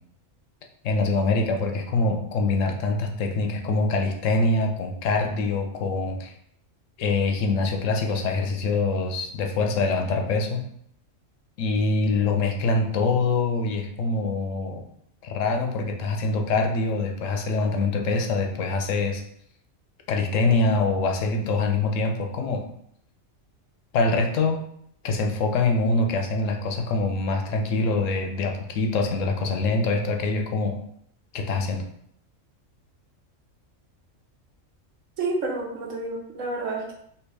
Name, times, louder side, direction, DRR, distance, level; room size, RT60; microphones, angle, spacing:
voice 1, 0.8-6.3 7.0-10.6 11.6-14.8 15.2-19.2 20.1-22.6 23.9-24.6 25.0-30.7 31.3-31.8, left 3 dB, 75° left, 3 dB, 0.9 m, -24 dB
voice 2, 35.2-36.9, right 2 dB, 75° right, 0 dB, 1.2 m, -29 dB
3.4 x 2.6 x 3.2 m, 0.70 s
omnidirectional pair, 1.4 m